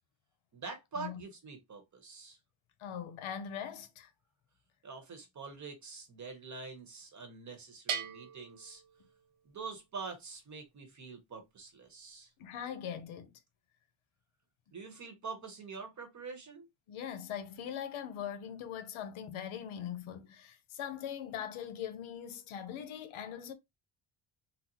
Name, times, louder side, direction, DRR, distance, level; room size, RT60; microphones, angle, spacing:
voice 1, 0.5-2.4 4.8-8.8 9.4-12.3 14.7-16.7, right 4 dB, 35° right, 0.9 m, -45 dB
voice 2, 2.8-4.1 12.4-13.4 16.9-23.5, left 9 dB, 80° left, 0.8 m, -41 dB
Bell, 7.9-9.6, right 7 dB, 90° right, 0.8 m, -40 dB
4.0 x 2.0 x 2.8 m
cardioid pair, 165°, 49 cm